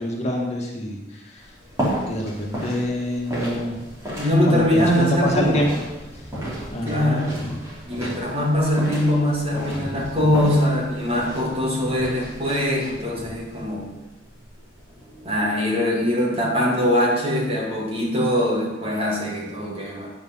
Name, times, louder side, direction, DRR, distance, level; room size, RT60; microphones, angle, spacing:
voice 1, 0.0-1.5 2.1-3.8 4.5-5.8 6.7-7.6 8.0-8.1 9.6-10.3, equal, 35° left, -1 dB, 2.1 m, -27 dB
sound 1, 1.4-15.4, equal, 15° right, 4.4 m, -33 dB
voice 2, 4.2-5.7 6.8-7.5 7.9-14.0 15.2-20.1, left 1 dB, 30° right, -2 dB, 2.6 m, -22 dB
10.0 x 7.2 x 7.4 m, 1.1 s
head